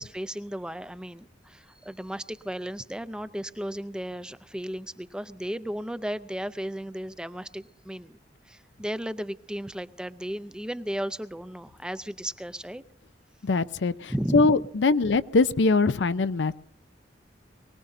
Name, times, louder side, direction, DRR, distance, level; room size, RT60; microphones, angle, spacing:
voice 1, 0.0-8.2 8.5-12.8 14.1-14.5, equal, 5° right, 13 dB, 0.5 m, -34 dB
voice 2, 13.4-16.5, left 3 dB, 90° left, 14 dB, 0.5 m, -22 dB
23.5 x 18.0 x 2.6 m, 0.70 s
head